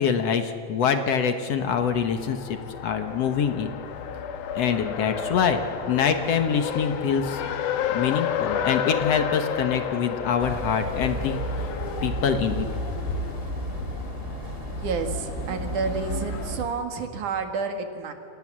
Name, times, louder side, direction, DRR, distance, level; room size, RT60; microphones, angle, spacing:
voice 1, 0.0-2.4 2.8-3.7 4.6-5.6 5.9-7.4 7.9-11.4 12.0-12.7, left 7 dB, 60° left, 7 dB, 2.2 m, -24 dB
Race car auto racing, 1.6-16.6, left 8 dB, 85° left, 2.8 m, -32 dB
sound 1, 10.4-16.6, right 2 dB, 20° right, 3.1 m, -33 dB
voice 2, 14.7-18.1, right 4 dB, 80° right, 6 dB, 3.5 m, -30 dB
30.0 x 25.5 x 7.5 m, 2.6 s
omnidirectional pair, 3.5 m